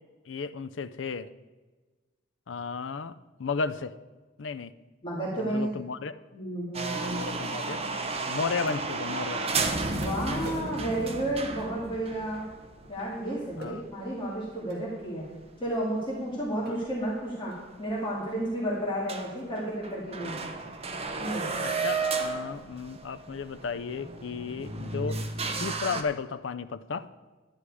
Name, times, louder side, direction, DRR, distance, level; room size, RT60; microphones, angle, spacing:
voice 1, 0.3-1.3 2.5-3.1 3.4-3.9 4.4-4.7 5.4-6.1 7.0-7.8 8.3-9.6 13.6-13.8 21.6-25.2 25.6-27.1, left 5 dB, 75° left, 14 dB, 0.5 m, -34 dB
voice 2, 5.0-5.7 6.3-7.2 9.8-12.5 12.9-15.2 15.6-20.4 21.2-21.5, right 1 dB, 25° left, -5 dB, 2.3 m, -32 dB
sound 1, 6.7-14.9 15.2-15.3 15.9-16.0 16.9-17.0 17.2-17.3 17.8-17.9 18.2-18.5 18.8-18.9 19.1-26.0, right 3 dB, 30° right, 0.9 m, -33 dB
sound 2, 7.6-7.7 8.7-8.8 9.5-9.6 10.0-12.0 13.6-13.8 14.7-14.9 15.7-15.8 16.2-16.4 16.7-17.0 17.5-17.7, right 2 dB, 55° right, 2.0 m, -46 dB
12.0 x 9.9 x 4.8 m, 1.3 s
head